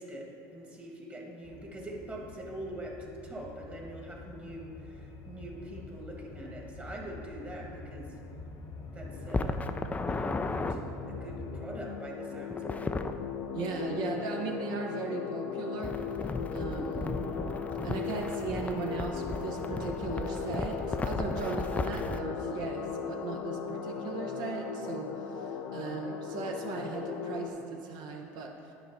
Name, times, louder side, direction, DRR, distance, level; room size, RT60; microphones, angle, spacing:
voice 1, 0.0-8.1 8.9-9.7 10.1-10.8 11.1-12.9, right 1 dB, 20° right, 0 dB, 1.4 m, -43 dB
sound 1, 1.4-11.7, left 2 dB, 50° left, 1.0 m, -46 dB
sound 2, 9.0-27.5, left 7 dB, 90° left, 0.6 m, -38 dB
sound 3, 9.3-10.8 12.5-13.1 15.8-22.2, left 3 dB, 15° left, 0.4 m, -35 dB
voice 2, 13.5-15.9 16.5-17.1 17.8-28.5, right 4 dB, 60° right, 2 dB, 0.8 m, -37 dB
10.0 x 4.8 x 4.1 m, 2.8 s
supercardioid pair, 90°, 8 cm